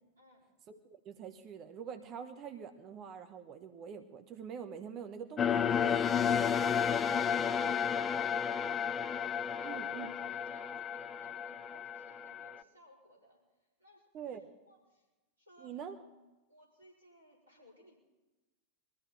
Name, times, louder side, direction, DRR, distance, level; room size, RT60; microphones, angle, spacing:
voice 1, 0.2-0.5 9.5-9.9 10.3-13.4 13.8-14.1 14.7-15.0 15.4-15.8 16.5-18.0, equal, 75° right, -3 dB, 4.7 m, -61 dB
voice 2, 1.0-6.0 9.6-10.1 14.1-14.5 15.6-16.0, right 7 dB, 35° right, 8 dB, 1.0 m, -45 dB
sound 1, 5.4-12.6, left 7 dB, 25° left, 0.5 m, -32 dB
21.0 x 14.0 x 4.4 m, 1.1 s
figure-of-eight pair, 90°, 0 cm